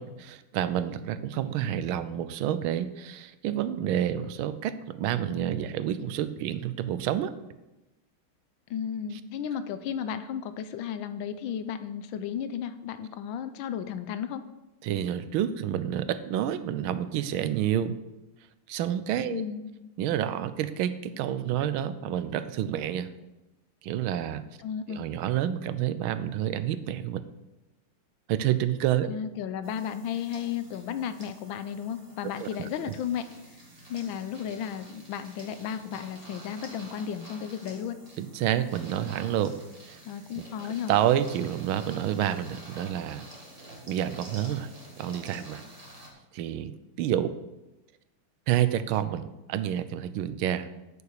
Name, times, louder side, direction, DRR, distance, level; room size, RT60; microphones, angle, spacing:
voice 1, 0.0-7.3 14.8-17.9 18.7-19.4 20.0-23.1 23.8-24.4 24.9-27.2 28.3-29.1 32.4-32.5 38.2-39.5 39.8-40.0 40.4-43.3 43.9-44.7 45.0-45.6 46.3-46.7 47.0-47.3 48.5-50.7, right 11 dB, 80° right, 13 dB, 1.4 m, -29 dB
voice 2, 8.7-14.4 19.3-19.7 24.6-25.1 29.1-33.3 33.9-38.0 40.0-40.9, left 8 dB, 75° left, 11 dB, 1.4 m, -34 dB
sound 1, 29.6-46.1, right 1 dB, 20° right, 1.8 m, -49 dB
8.7 x 6.8 x 6.6 m, 1.0 s
omnidirectional pair, 2.3 m